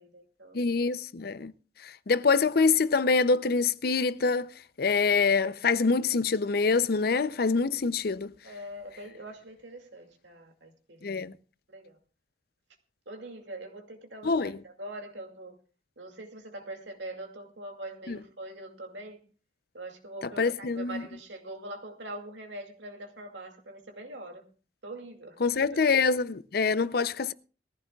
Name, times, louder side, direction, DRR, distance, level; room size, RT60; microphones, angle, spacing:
voice 1, 0.0-0.6 8.4-11.0 11.7-12.0 13.1-15.6 16.0-19.2 19.7-24.4 24.8-25.6, right 1 dB, 85° right, 2.4 m, -43 dB
voice 2, 0.5-1.5 2.1-4.5 4.8-8.3 11.0-11.3 14.2-14.6 18.1-18.2 20.4-21.0 25.4-27.3, left 4 dB, 55° left, 0.5 m, -25 dB
20.5 x 15.0 x 2.3 m
head